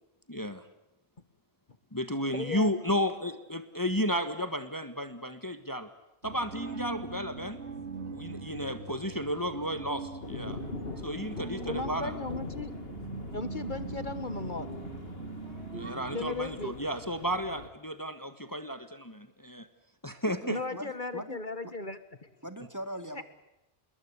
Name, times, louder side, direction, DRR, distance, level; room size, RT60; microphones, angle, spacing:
voice 1, 0.3-0.7 1.9-5.9 6.2-7.6 8.1-10.6 11.0-12.1 15.7-19.7 20.0-20.6, equal, 15° left, 10 dB, 1.6 m, -33 dB
voice 2, 2.3-2.8 11.7-12.7 13.3-14.7 16.1-16.8 20.5-22.3 23.1-23.2, left 3 dB, 45° left, 12 dB, 1.6 m, -36 dB
sound 1, 6.2-16.2, right 4 dB, 75° right, 2.3 m, -41 dB
sound 2, 10.2-17.7, left 3 dB, 60° left, 2.4 m, -42 dB
voice 3, 20.3-21.4 21.6-21.7 22.4-23.2, equal, 15° right, 9 dB, 2.2 m, -41 dB
27.0 x 22.0 x 8.4 m, 0.91 s
omnidirectional pair, 1.1 m